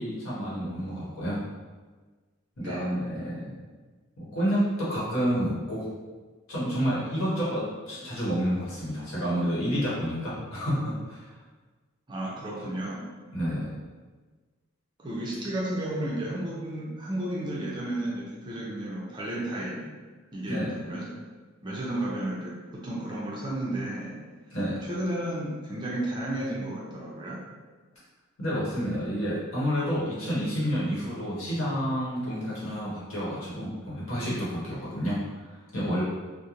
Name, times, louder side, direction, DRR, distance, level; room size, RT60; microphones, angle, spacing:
voice 1, 0.0-1.4 2.6-3.5 4.2-5.9 6.5-11.3 13.3-13.7 20.5-20.8 24.5-24.8 28.4-35.2 35.7-36.0, equal, 85° left, -7 dB, 1.0 m, -29 dB
voice 2, 2.6-2.9 12.1-13.0 15.0-20.0 20.3-21.1 21.6-24.2 24.8-27.4, right 1 dB, 20° right, -5 dB, 0.5 m, -33 dB
2.4 x 2.0 x 2.9 m, 1.3 s
head